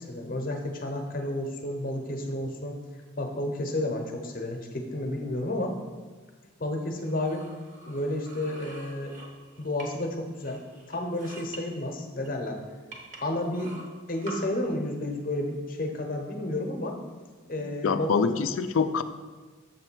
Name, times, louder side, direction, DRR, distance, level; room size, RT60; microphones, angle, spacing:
voice 1, 0.0-2.8 3.2-5.8 6.6-7.5 7.9-9.1 9.6-10.6 10.9-12.6 13.2-13.7 14.1-17.0 17.5-18.1, left 1 dB, 45° left, 3 dB, 0.8 m, -31 dB
sound 1, 7.0-10.1 10.4-11.6 12.2-12.3 12.9-14.4, right 2 dB, 40° right, 0.9 m, -46 dB
voice 2, 17.6-19.0, left 5 dB, 75° left, 11 dB, 0.4 m, -26 dB
6.9 x 3.2 x 6.1 m, 1.4 s
head